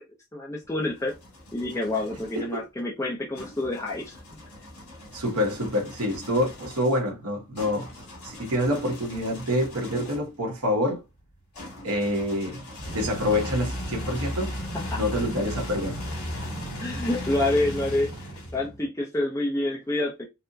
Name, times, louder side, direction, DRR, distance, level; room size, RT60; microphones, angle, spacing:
voice 1, 0.3-1.1 1.5-4.4 14.7-15.0 16.8-20.3, left 2 dB, 15° left, 0.5 m, -28 dB
sound 1, 0.6-2.4 3.3-10.4 11.5-18.8, equal, 75° left, 2.0 m, -37 dB
voice 2, 2.3-2.7 5.1-7.9 8.2-11.0 11.8-12.7 12.9-14.5 14.9-16.0, left 1 dB, 80° right, 1.0 m, -27 dB
4.2 x 2.1 x 2.6 m
head